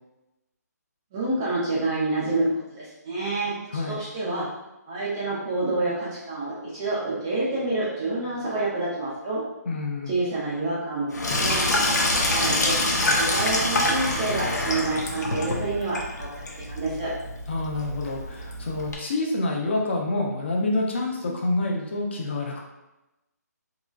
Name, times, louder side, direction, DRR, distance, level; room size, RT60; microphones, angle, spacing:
voice 1, 1.1-3.5 3.9-4.4 4.9-9.4 10.1-12.8 13.1-16.3 16.6-17.1, right 2 dB, 10° right, -7 dB, 0.3 m, -28 dB
voice 2, 9.7-10.1 17.5-22.6, left 2 dB, 40° left, 0 dB, 0.6 m, -27 dB
Sink (filling or washing), 11.1-18.9, left 1 dB, 75° left, 0.8 m, -26 dB
3.9 x 2.9 x 2.3 m, 0.96 s
hypercardioid pair, 170°, 9 cm